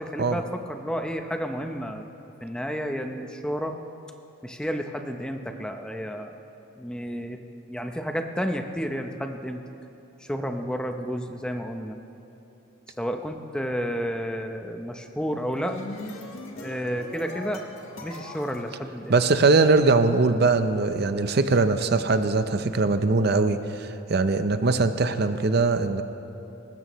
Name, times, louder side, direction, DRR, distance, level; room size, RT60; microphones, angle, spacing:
voice 1, 0.0-2.1 2.4-3.8 4.4-6.3 6.8-7.4 7.7-9.6 10.2-12.0 13.0-15.8 16.6-17.6 18.0-19.2, equal, 5° left, 5 dB, 0.7 m, -31 dB
sound 1, 15.4-19.7, left 2 dB, 80° left, 1.5 m, -40 dB
voice 2, 19.1-26.0, right 3 dB, 50° right, 9 dB, 0.6 m, -21 dB
22.0 x 19.0 x 3.1 m, 2.9 s
head